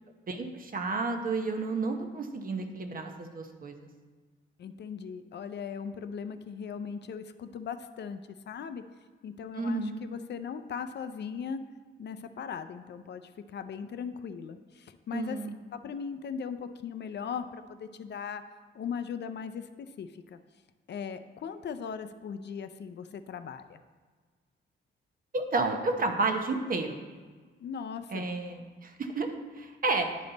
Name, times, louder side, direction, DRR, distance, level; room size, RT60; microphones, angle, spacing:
voice 1, 0.3-3.9 9.5-10.0 15.1-15.6 25.3-27.0 28.1-30.1, right 3 dB, 45° right, 5 dB, 0.8 m, -31 dB
voice 2, 4.6-8.2 8.5-8.8 9.2-11.6 12.0-15.4 15.7-18.4 18.7-20.4 20.9-23.8 27.6-28.3, left 6 dB, 55° left, 10 dB, 0.4 m, -38 dB
10.5 x 5.2 x 4.0 m, 1.5 s
wide cardioid pair, 135°, 21 cm